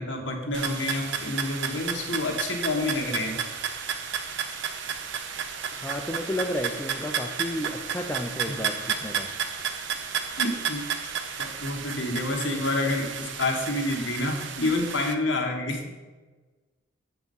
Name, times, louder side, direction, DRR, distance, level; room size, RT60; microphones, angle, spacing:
voice 1, 0.0-3.4 8.5-8.6 10.4-10.8 11.4-15.9, left 2 dB, 60° left, 1 dB, 1.3 m, -28 dB
sound 1, 0.5-15.1, right 7 dB, 60° right, 0.5 m, -32 dB
voice 2, 5.8-9.4, left 1 dB, 10° left, 2 dB, 0.3 m, -32 dB
7.6 x 4.7 x 5.4 m, 1.3 s
head